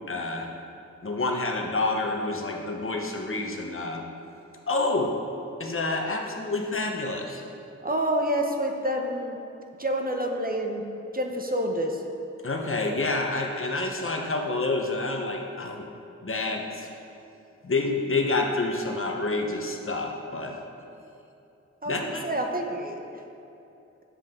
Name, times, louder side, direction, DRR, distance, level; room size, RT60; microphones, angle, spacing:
voice 1, 0.1-0.5 1.0-4.0 4.7-5.1 5.6-7.4 12.4-15.9 16.2-16.9 17.6-20.6 21.9-22.2, left 2 dB, 45° left, 1 dB, 1.1 m, -28 dB
voice 2, 7.8-9.4 9.8-10.8 11.1-12.0 21.8-23.2, right 1 dB, 30° right, 2 dB, 1.1 m, -28 dB
10.0 x 7.6 x 3.8 m, 2.8 s
cardioid pair, 50°, 29 cm